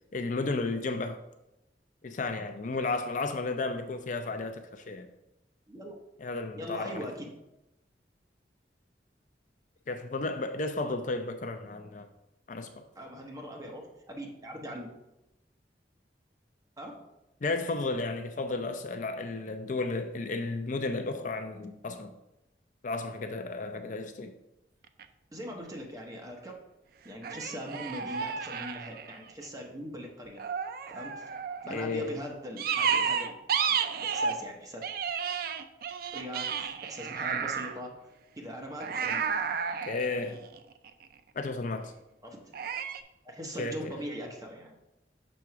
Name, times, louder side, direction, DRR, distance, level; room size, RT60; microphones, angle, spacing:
voice 1, 0.1-1.2 2.0-5.1 6.2-7.1 9.9-12.1 12.5-12.9 17.4-22.1 22.8-24.3 31.7-32.2 39.8-40.4 41.3-41.9 43.6-44.0, left 3 dB, 45° left, 0.4 m, -33 dB
voice 2, 6.5-7.3 13.0-14.9 16.8-17.0 25.3-26.5 27.0-30.4 30.9-31.3 31.6-34.8 36.1-37.9 38.3-39.2 42.2-42.5 43.2-44.8, equal, 20° right, 1.1 m, -41 dB
sound 1, 24.8-25.0 27.2-29.5 30.4-31.8 32.6-34.5 34.8-37.8 38.8-41.0 42.5-43.0, right 6 dB, 55° right, 0.4 m, -32 dB
6.2 x 3.6 x 5.7 m
head